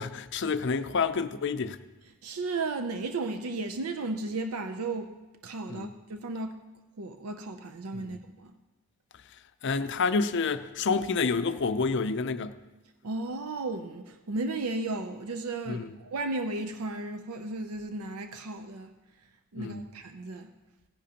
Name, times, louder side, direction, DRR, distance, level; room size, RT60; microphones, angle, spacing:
voice 1, 0.0-1.8 5.7-5.9 7.9-8.2 9.6-12.5 15.7-15.9 19.6-19.9, left 4 dB, 55° left, 0.5 m, -29 dB
voice 2, 2.2-6.6 7.0-8.5 13.0-18.9 19.5-20.5, right 3 dB, 80° right, 0.6 m, -34 dB
17.0 x 10.5 x 2.9 m
head